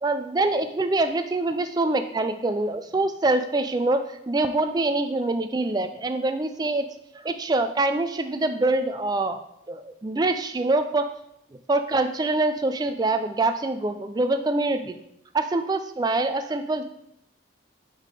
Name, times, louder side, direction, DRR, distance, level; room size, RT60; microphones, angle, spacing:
voice 1, 0.0-6.9 7.1-9.4 9.7-11.1 11.7-14.9 15.3-16.8, right 2 dB, 20° right, 9 dB, 0.3 m, -25 dB
5.7 x 3.6 x 4.7 m, 0.79 s
head